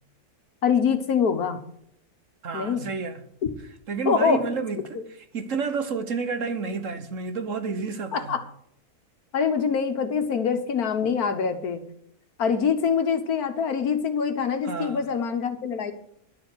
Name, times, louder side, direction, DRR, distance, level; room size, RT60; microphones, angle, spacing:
voice 1, 0.6-1.6 2.5-2.9 4.0-4.5 8.1-8.4 9.3-11.8 12.4-15.9, left 6 dB, 70° left, 1.7 m, -24 dB
voice 2, 2.4-3.2 3.9-5.0 5.3-8.4 14.6-15.1, right 5 dB, 55° right, 1.5 m, -30 dB
12.0 x 6.9 x 7.9 m
omnidirectional pair, 1.7 m